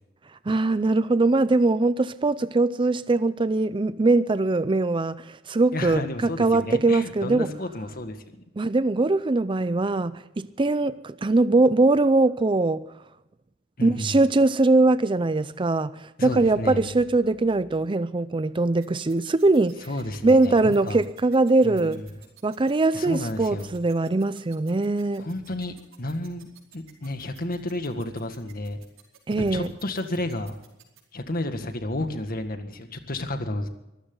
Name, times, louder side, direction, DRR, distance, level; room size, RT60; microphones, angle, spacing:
voice 1, 0.5-6.0 6.4-7.5 8.6-12.9 13.8-19.9 20.2-22.0 22.4-25.3 29.3-29.7, right 2 dB, 25° right, 14 dB, 0.5 m, -22 dB
voice 2, 5.7-8.4 13.8-14.2 16.2-17.0 19.9-21.0 21.6-22.0 22.9-23.7 25.2-26.5 26.7-28.8 29.5-30.6 31.1-33.7, left 1 dB, 45° left, 7 dB, 1.9 m, -31 dB
sound 1, 18.8-31.0, right 11 dB, 90° right, 4.7 m, -53 dB
24.0 x 14.5 x 3.9 m, 0.93 s
head